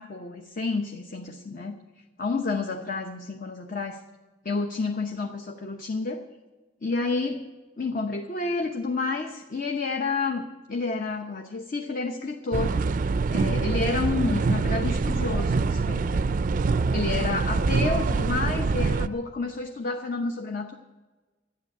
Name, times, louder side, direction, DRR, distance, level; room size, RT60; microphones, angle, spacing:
voice 1, 0.0-1.8 2.2-4.0 4.4-6.2 6.8-7.4 7.8-16.2 16.9-20.8, left 3 dB, 50° left, 4 dB, 0.9 m, -30 dB
sound 1, 12.5-19.1, right 4 dB, 45° right, 0.4 m, -25 dB
12.5 x 10.5 x 8.4 m, 1.2 s
head